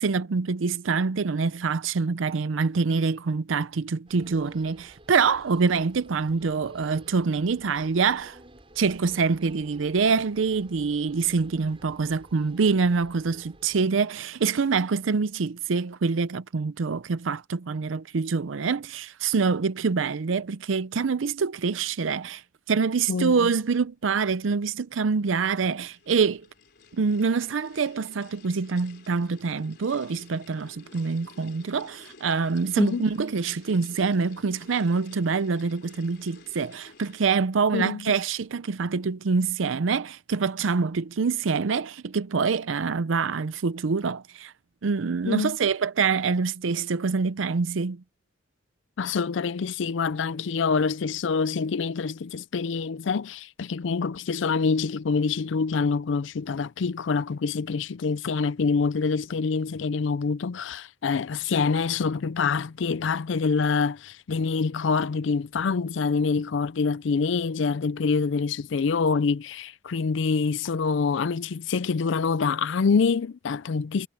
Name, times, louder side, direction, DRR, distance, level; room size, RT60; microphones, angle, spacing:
voice 1, 0.0-8.4 8.8-22.4 22.7-26.5 26.9-44.5 44.8-48.0, right 5 dB, 85° right, 0.5 m, -25 dB
sound 1, 4.1-13.8, right 1 dB, 30° right, 6.8 m, -52 dB
voice 2, 23.1-23.5 32.8-33.0 37.7-38.0 45.3-45.6 49.0-74.1, left 5 dB, 75° left, 0.4 m, -26 dB
sound 2, 25.4-37.5, left 4 dB, 55° left, 3.9 m, -52 dB
head